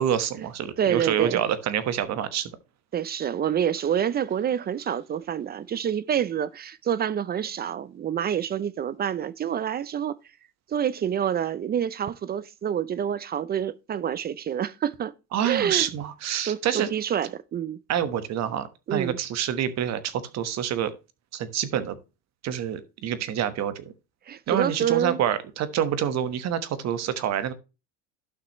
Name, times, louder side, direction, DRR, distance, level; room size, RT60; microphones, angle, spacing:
voice 1, 0.0-2.5 15.3-16.9 17.9-20.9 21.3-22.0 22.4-23.9 24.5-27.5, right 9 dB, 45° right, 1.2 m, -27 dB
voice 2, 0.8-1.4 2.9-10.1 10.7-15.1 15.4-15.9 16.5-17.8 18.9-19.2 24.3-25.2, right 9 dB, 30° right, 0.4 m, -27 dB
12.0 x 5.8 x 3.0 m
supercardioid pair, 115°, 36 cm